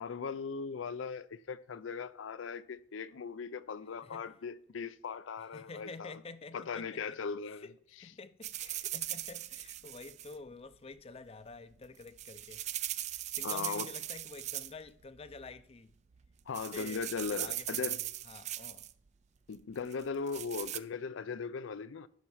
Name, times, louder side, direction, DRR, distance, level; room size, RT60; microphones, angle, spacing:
voice 1, 0.0-6.2 6.5-7.7 13.4-13.9 16.5-18.0 19.5-22.1, left 5 dB, 85° left, 0.5 m, -38 dB
voice 2, 5.4-7.0 7.6-7.7 8.0-15.9 16.7-18.0 18.2-18.9, left 4 dB, 30° left, 0.5 m, -49 dB
sound 1, 8.4-10.3 11.8-14.9 15.2-15.6 16.1-16.3 16.5-18.9 19.9-20.8, right 13 dB, 35° right, 0.3 m, -39 dB
11.0 x 4.4 x 5.5 m
head